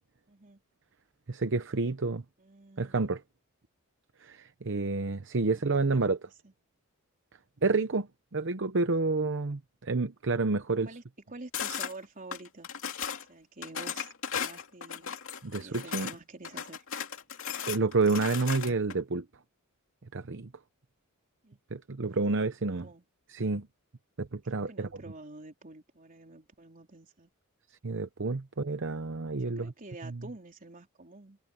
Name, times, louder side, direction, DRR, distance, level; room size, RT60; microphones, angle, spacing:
voice 1, 0.3-0.6 2.4-3.1 5.4-6.1 6.4-6.5 10.8-12.7 13.3-15.2 15.5-16.8 21.4-21.6 22.1-22.4 22.8-23.0 24.7-27.3 29.4-31.4, right 2 dB, 40° right, 3.9 m, -48 dB
voice 2, 1.3-2.2 2.8-3.2 4.2-6.2 7.6-8.1 8.3-10.9 15.4-16.1 17.7-19.2 20.1-20.5 21.7-22.9 23.3-23.7 24.2-24.9 27.8-29.7 30.0-30.2, right 3 dB, 55° right, 0.8 m, -29 dB
sound 1, 11.5-11.9 12.3-13.2 13.6-16.2 16.4-18.9, left 8 dB, 60° left, 2.8 m, -36 dB
head